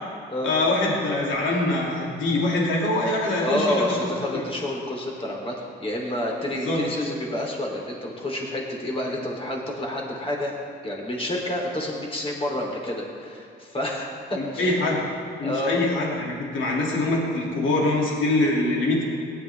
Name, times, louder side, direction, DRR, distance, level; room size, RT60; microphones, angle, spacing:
voice 1, 0.4-3.9 6.5-6.8 14.4-15.1 15.4-19.0, left 2 dB, 75° left, -3 dB, 2.6 m, -24 dB
voice 2, 3.4-10.6 10.8-14.7 15.4-15.8, left 1 dB, 30° left, -1 dB, 3.3 m, -29 dB
17.5 x 11.5 x 3.5 m, 2.6 s
cardioid pair, 90°, 20 cm